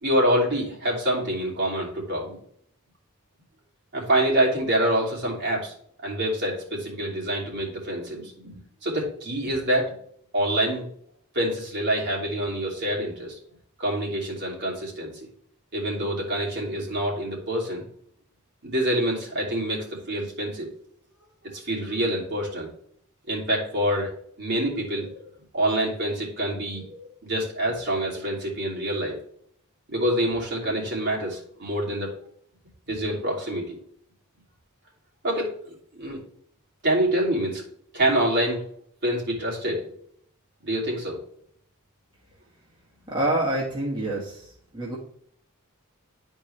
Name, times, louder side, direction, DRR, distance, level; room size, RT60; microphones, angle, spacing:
voice 1, 0.0-2.4 3.9-5.7 6.0-9.9 10.3-10.9 11.3-13.4 13.8-15.1 15.7-17.8 18.6-20.7 21.5-22.7 23.3-24.1 24.4-25.2 25.5-29.2 29.9-32.1 32.9-33.8 35.2-35.6 35.9-36.2 36.8-37.6 37.9-38.6 39.0-39.8 40.6-41.2, right 1 dB, 55° right, -3 dB, 2.9 m, -26 dB
voice 2, 43.1-45.0, right 1 dB, 20° right, -5 dB, 1.5 m, -27 dB
11.0 x 4.5 x 3.3 m, 0.64 s
head